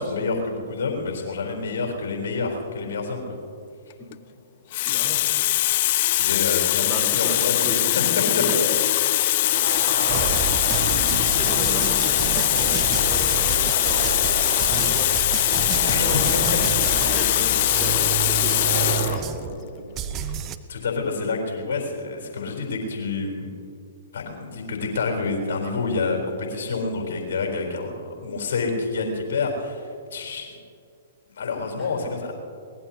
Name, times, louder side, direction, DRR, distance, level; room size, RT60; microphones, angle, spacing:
voice 1, 0.0-3.4 5.6-8.0 9.7-10.1 15.9-16.3 20.7-23.5 24.1-30.6 31.3-32.3, left 4 dB, 65° left, 2 dB, 4.0 m, -28 dB
Water tap faucet, 3.9-4.1 4.7-19.2 20.1-20.3, left 15 dB, 50° left, 0.3 m, -22 dB
voice 2, 4.8-5.2 6.8-8.8 10.0-10.3 10.6-16.4 17.1-19.8 27.6-27.8 31.8-31.9, right 1 dB, 15° right, -3 dB, 4.2 m, -35 dB
sound 1, 9.4-19.1, right 3 dB, 60° right, 4.4 m, -32 dB
sound 2, 10.1-19.6 20.0-20.6, right 8 dB, 30° right, 0.8 m, -30 dB
23.0 x 20.0 x 2.9 m, 2.4 s
hypercardioid pair, 120°, 0 cm